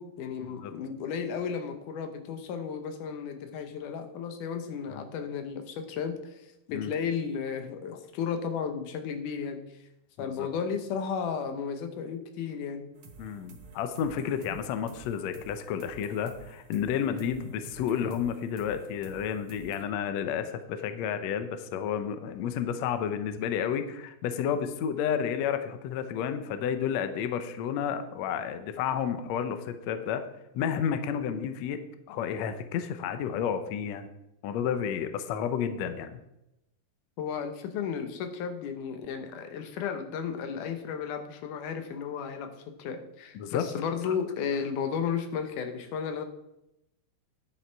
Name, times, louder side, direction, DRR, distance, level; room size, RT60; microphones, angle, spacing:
voice 1, 0.0-9.6 10.2-12.9 14.5-14.6 37.2-42.5 42.8-46.2, left 6 dB, 70° left, 6 dB, 2.3 m, -34 dB
voice 2, 10.2-10.5 13.2-30.2 30.5-31.8 32.1-34.1 34.4-36.1 43.3-43.6, left 8 dB, 90° left, 9 dB, 1.5 m, -31 dB
sound 1, 12.9-19.8, right 3 dB, 60° right, 1.5 m, -51 dB
10.5 x 7.4 x 4.6 m, 0.86 s
omnidirectional pair, 4.2 m